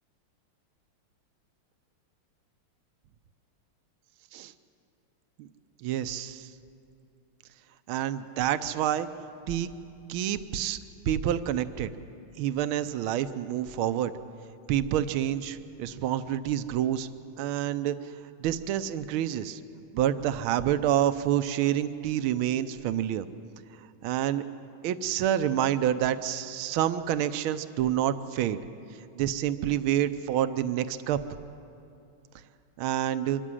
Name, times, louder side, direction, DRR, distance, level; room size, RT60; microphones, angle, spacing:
voice 1, 5.8-6.5 7.9-9.1 9.5-9.7 10.1-10.8 11.1-11.9 12.4-14.1 14.7-17.1 17.4-18.0 18.4-19.6 19.9-23.3 24.0-24.4 24.8-28.6 29.1-31.2 32.8-33.4, right 11 dB, 75° right, 11 dB, 1.6 m, -28 dB
25.0 x 14.0 x 9.9 m, 2.7 s
omnidirectional pair, 2.4 m